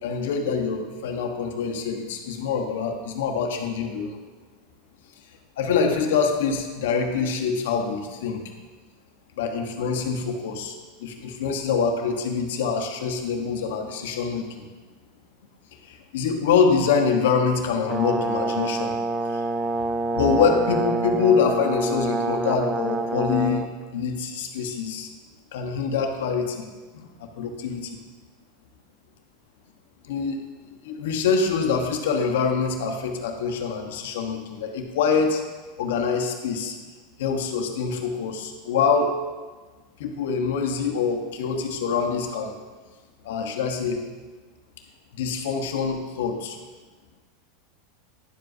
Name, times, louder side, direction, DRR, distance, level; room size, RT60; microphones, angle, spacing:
voice 1, 0.0-4.2 5.6-8.4 9.4-14.7 15.8-19.0 19.3-19.5 20.1-25.1 25.5-26.7 26.9-28.0 30.0-30.4 30.8-35.4 35.8-36.8 37.2-39.1 40.0-42.6 43.2-44.0 45.1-46.6, left 5 dB, 85° left, 3 dB, 1.1 m, -25 dB
Brass instrument, 17.9-23.7, right 2 dB, 10° right, 0.4 m, -27 dB
10.5 x 7.7 x 2.7 m, 1.4 s
supercardioid pair, 150°, 0 cm